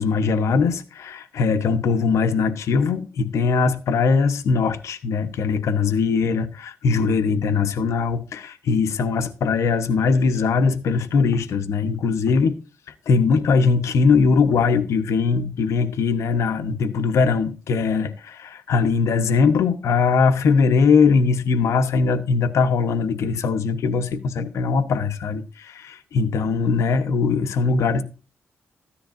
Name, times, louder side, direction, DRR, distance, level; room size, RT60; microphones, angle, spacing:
voice 1, 0.0-12.6 13.1-28.0, left 5 dB, 80° left, 1.1 m, -21 dB
14.0 x 10.0 x 2.6 m
cardioid pair, 85°, 5 cm